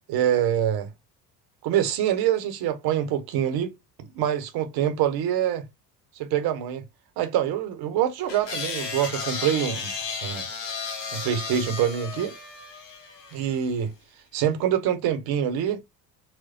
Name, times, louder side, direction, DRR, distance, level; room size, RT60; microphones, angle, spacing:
voice 1, 0.1-0.9 1.6-3.7 4.1-5.6 6.2-6.8 7.2-9.9 10.2-10.5 11.1-12.3 13.3-13.9 14.3-15.8, right 10 dB, 50° right, 0.9 m, -25 dB
sound 1, 8.3-13.6, left 5 dB, 75° left, 1.4 m, -34 dB
4.2 x 2.2 x 2.7 m
hypercardioid pair, 60°, 48 cm